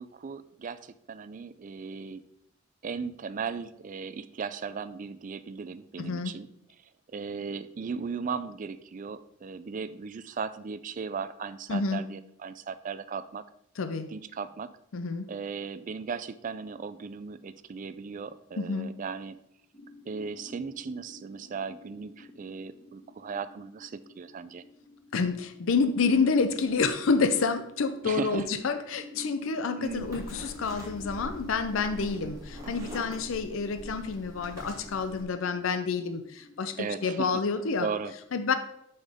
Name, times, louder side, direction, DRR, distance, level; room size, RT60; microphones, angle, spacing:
voice 1, 0.0-2.2 2.8-6.5 7.1-13.4 14.1-14.7 15.3-19.4 20.1-24.6 28.0-28.5 29.8-30.2 32.7-32.9 36.8-37.4 37.8-38.1, right 5 dB, 40° right, 14 dB, 0.3 m, -37 dB
voice 2, 6.0-6.4 11.7-12.1 13.8-14.1 14.9-15.3 18.6-19.0 25.1-37.9 38.3-38.5, left 4 dB, 70° left, 10 dB, 0.5 m, -28 dB
sound 1, 19.7-37.4, left 1 dB, 25° left, 1.2 m, -50 dB
sound 2, 29.9-35.2, equal, 15° right, 2.2 m, -43 dB
7.5 x 5.4 x 3.5 m, 0.75 s
head